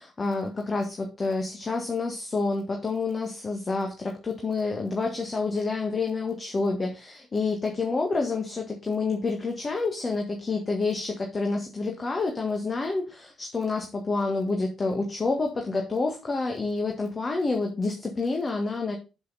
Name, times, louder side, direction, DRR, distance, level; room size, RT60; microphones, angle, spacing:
voice 1, 0.0-19.0, left 3 dB, 30° left, 2 dB, 1.6 m, -28 dB
7.4 x 6.5 x 4.0 m, 0.31 s
figure-of-eight pair, 45°, 0 cm